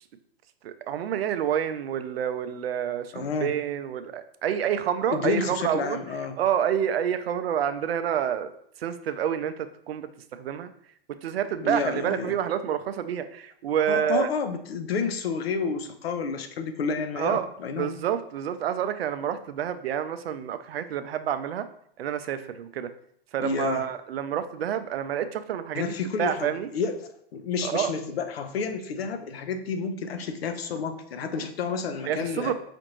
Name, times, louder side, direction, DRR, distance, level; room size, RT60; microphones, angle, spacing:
voice 1, 0.6-6.0 6.4-8.5 8.8-10.7 11.1-14.3 17.2-17.5 17.7-21.7 22.0-22.9 23.3-25.9 26.2-26.7 27.6-27.9 32.0-32.5, right 9 dB, 80° right, 11 dB, 0.5 m, -28 dB
voice 2, 3.1-3.5 5.1-6.4 11.6-12.3 13.9-17.9 23.4-23.8 25.7-27.0 27.3-32.5, left 5 dB, 80° left, 8 dB, 0.6 m, -30 dB
5.0 x 2.5 x 3.0 m, 0.68 s
hypercardioid pair, 110°, 30 cm